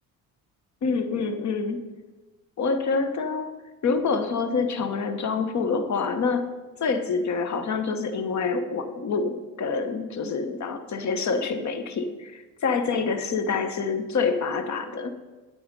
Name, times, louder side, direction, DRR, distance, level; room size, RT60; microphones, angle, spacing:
voice 1, 0.8-1.8 2.6-3.5 3.8-6.5 6.8-15.1, left 4 dB, 45° left, 10 dB, 1.1 m, -26 dB
9.3 x 8.0 x 5.3 m, 1.2 s
supercardioid pair, 65°, 41 cm